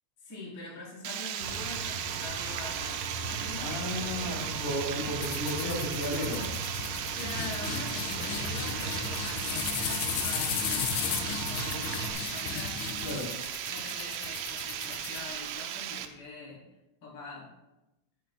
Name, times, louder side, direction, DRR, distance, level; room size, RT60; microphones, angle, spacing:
voice 1, 0.2-4.5 7.1-13.2 13.6-16.6 17.0-17.5, left 3 dB, 25° left, -6 dB, 3.3 m, -44 dB
Water, 1.0-16.1, right 10 dB, 90° right, 2.0 m, -36 dB
Engine, 1.4-12.1, right 2 dB, 60° right, 3.4 m, -39 dB
voice 2, 3.6-6.4 13.0-13.3, left 1 dB, 65° left, -6 dB, 5.7 m, -34 dB
sound 1, 5.2-15.7, left 9 dB, 85° left, 3.1 m, -36 dB
20.0 x 7.7 x 2.2 m, 0.98 s
omnidirectional pair, 5.0 m